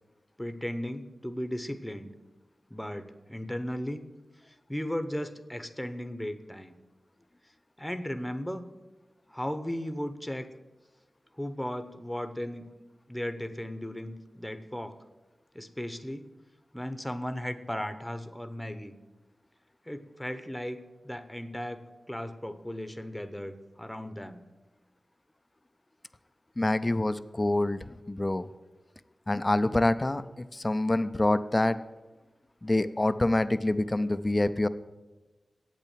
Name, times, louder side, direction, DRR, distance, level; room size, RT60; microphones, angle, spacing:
voice 1, 0.4-2.1 2.7-4.0 4.5-6.8 7.8-8.7 9.3-10.5 11.4-12.6 13.1-14.9 15.5-16.2 16.7-18.9 19.9-20.8 21.0-21.8 22.1-24.4, equal, 5° left, 10 dB, 0.9 m, -36 dB
voice 2, 26.6-28.5 29.3-31.8 32.6-34.7, left 1 dB, 25° left, 13 dB, 0.5 m, -26 dB
8.4 x 8.1 x 9.0 m, 1.2 s
cardioid pair, 55°, 0 cm